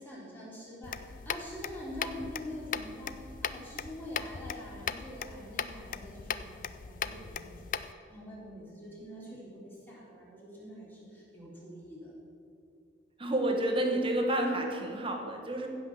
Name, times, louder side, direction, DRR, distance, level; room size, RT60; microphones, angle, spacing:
voice 1, 0.0-12.2, equal, 10° left, -6 dB, 3.3 m, -45 dB
sound 1, 0.8-7.9, left 7 dB, 45° left, 0.4 m, -39 dB
voice 2, 13.2-15.7, right 1 dB, 30° right, 3 dB, 1.2 m, -29 dB
15.5 x 5.7 x 7.0 m, 2.6 s
head